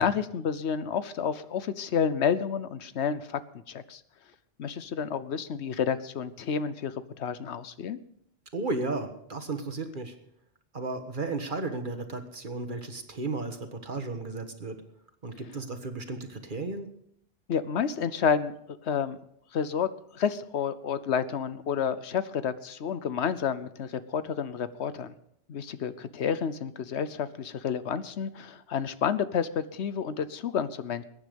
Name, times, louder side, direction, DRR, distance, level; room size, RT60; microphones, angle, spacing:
voice 1, 0.0-3.4 3.7-4.0 4.6-8.0 17.5-18.5 18.8-19.2 19.5-19.9 20.1-25.1 25.5-31.0, left 7 dB, 80° left, 14 dB, 1.1 m, -30 dB
voice 2, 8.5-10.1 10.7-14.8 15.2-16.9, right 3 dB, 50° right, 7 dB, 1.7 m, -34 dB
21.5 x 9.8 x 5.2 m, 0.73 s
omnidirectional pair, 1.1 m